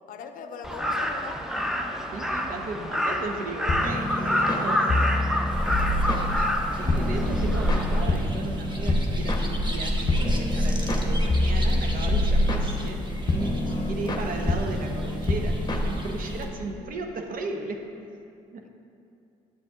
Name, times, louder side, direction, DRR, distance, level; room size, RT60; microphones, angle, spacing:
voice 1, 0.1-1.4 5.7-6.4 13.6-14.3 18.5-18.7, left 6 dB, 60° left, 7 dB, 0.5 m, -42 dB
Crow, 0.6-8.0, left 1 dB, ahead, 0.6 m, -28 dB
voice 2, 2.1-5.1 6.8-13.0 13.3-18.2 18.5-18.7, right 3 dB, 60° right, 3 dB, 0.8 m, -36 dB
sound 1, 3.7-16.5, left 1 dB, 25° left, 0.8 m, -28 dB
sound 2, 5.5-16.5, equal, 30° right, 0.9 m, -28 dB
8.5 x 7.7 x 2.4 m, 2.5 s
hypercardioid pair, 60°, 16 cm